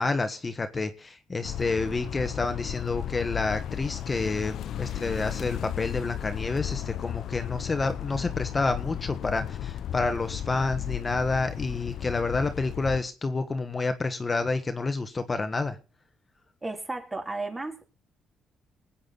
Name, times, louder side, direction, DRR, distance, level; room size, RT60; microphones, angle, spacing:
voice 1, 0.0-15.8, left 3 dB, 30° left, 1.4 m, -29 dB
sound 1, 1.4-13.0, left 11 dB, 70° left, 0.6 m, -34 dB
voice 2, 16.6-17.9, right 2 dB, 20° right, 3.0 m, -34 dB
20.5 x 8.8 x 4.0 m
cardioid pair, 90°, 0 cm